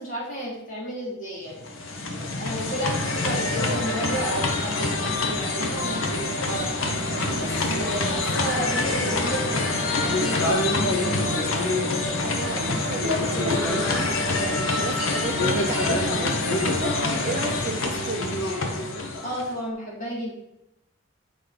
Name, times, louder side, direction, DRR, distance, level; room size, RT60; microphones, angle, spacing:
voice 1, 0.0-1.7 2.3-6.9 7.3-10.6 19.2-20.3, equal, 40° left, -6 dB, 3.1 m, -32 dB
sound 1, 1.5-19.6, left 2 dB, 80° left, 1.1 m, -25 dB
voice 2, 12.2-18.3, right 3 dB, 40° right, 5 dB, 0.6 m, -34 dB
8.6 x 5.2 x 4.0 m, 0.85 s
head